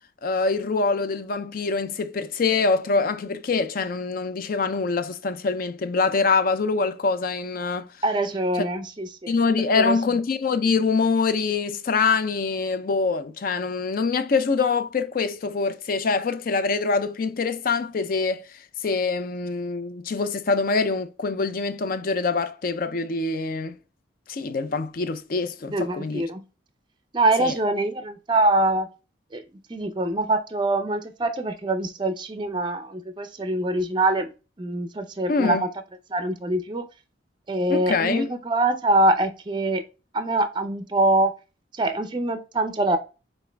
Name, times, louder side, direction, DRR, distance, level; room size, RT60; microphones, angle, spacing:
voice 1, 0.2-7.9 9.3-18.5 18.8-23.7 24.3-26.3 27.4-27.5 35.3-35.6 37.7-38.3, left 4 dB, 50° left, 0.4 m, -24 dB
voice 2, 8.0-9.3 9.7-10.0 25.7-26.4 27.1-28.9 29.3-29.4 29.7-34.3 34.6-35.7 36.1-36.9 37.5-39.8 40.1-41.3 41.8-43.0, right 2 dB, 25° right, 0.4 m, -24 dB
5.9 x 2.5 x 3.3 m
head